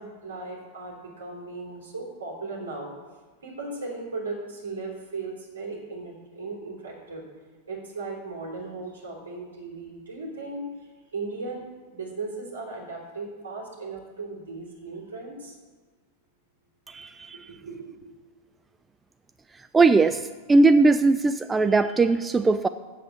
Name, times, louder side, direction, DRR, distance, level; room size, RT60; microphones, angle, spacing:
voice 1, 0.0-2.9 3.4-7.2 7.7-15.6 17.5-18.0, right 3 dB, 65° right, -2 dB, 3.2 m, -37 dB
voice 2, 16.9-17.5 19.7-22.7, right 3 dB, 15° right, 12 dB, 0.3 m, -20 dB
7.8 x 7.6 x 7.4 m, 1.4 s
figure-of-eight pair, 90°, 0 cm